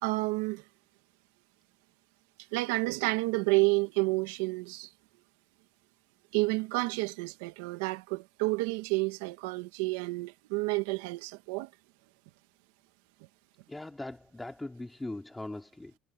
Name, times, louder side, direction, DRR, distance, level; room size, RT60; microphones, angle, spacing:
voice 1, 0.0-0.6 2.5-4.9 6.3-11.7, right 24 dB, 85° right, 1.8 m, -30 dB
voice 2, 13.7-16.0, left 2 dB, 10° left, 2.8 m, -40 dB
supercardioid pair, 90°, 0 cm